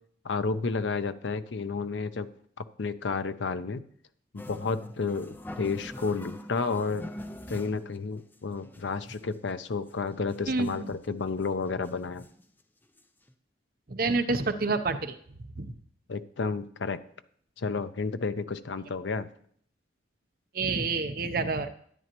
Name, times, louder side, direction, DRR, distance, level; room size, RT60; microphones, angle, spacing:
voice 1, 0.2-2.3 2.6-3.8 4.3-7.0 7.5-12.3 16.1-17.0 17.6-19.3, left 4 dB, 75° left, 12 dB, 0.6 m, -31 dB
sound 1, 4.4-8.0 8.3-8.4 8.6-9.4 9.9-10.0 10.2-11.0 11.4-11.5 11.8-12.5 13.0-13.1 13.3-13.4, left 1 dB, 10° left, 0.4 m, -43 dB
voice 2, 10.5-10.9 13.9-15.1 15.6-15.7 20.5-21.7, right 3 dB, 50° right, 8 dB, 0.7 m, -28 dB
12.5 x 9.9 x 3.0 m, 0.62 s
head